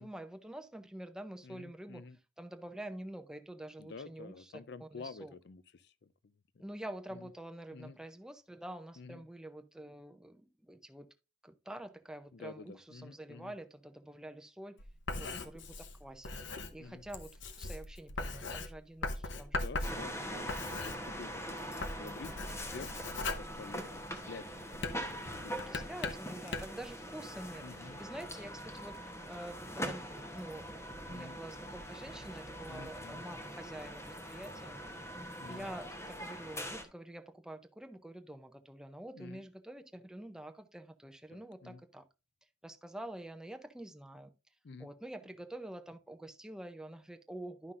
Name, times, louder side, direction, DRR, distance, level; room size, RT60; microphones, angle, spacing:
voice 1, 0.0-2.0 2.4-4.5 4.8-5.3 6.6-11.1 11.4-14.8 15.1-19.6 20.0-20.1 23.7-24.3 25.7-27.6 28.0-34.8 35.5-42.0 42.6-44.3 44.8-47.7, right 1 dB, 5° right, 0.5 m, -47 dB
voice 2, 1.4-2.2 3.8-6.8 7.1-7.3 7.7-8.0 9.0-9.2 12.3-13.5 15.1-15.4 16.8-17.0 19.5-24.7 24.9-25.6 27.6-28.0 31.1-31.4 32.7-33.2 35.4-35.7 39.1-39.4 41.3-41.8 44.6-44.9, left 4 dB, 60° left, 0.5 m, -50 dB
Writing, 14.8-21.4 21.7-24.2 24.7-26.9, left 3 dB, 80° left, 0.9 m, -40 dB
sound 1, 19.8-36.8, equal, 15° left, 0.9 m, -43 dB
11.0 x 5.7 x 2.5 m
head